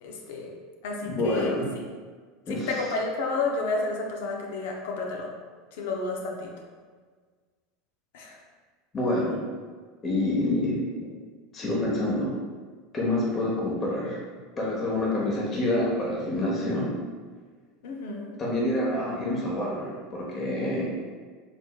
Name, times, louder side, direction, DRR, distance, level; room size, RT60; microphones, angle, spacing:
voice 1, 0.0-0.5 0.8-1.5 2.5-5.3 5.8-6.5 8.1-8.4 17.8-18.3, left 3 dB, 70° left, 0 dB, 0.6 m, -31 dB
voice 2, 1.0-1.7 2.5-2.8 8.9-9.4 10.0-10.7 11.5-12.3 12.9-14.2 14.6-16.9 18.4-20.9, left 1 dB, 30° left, -5 dB, 1.0 m, -27 dB
4.0 x 3.1 x 2.3 m, 1.5 s
hypercardioid pair, 85°, 0 cm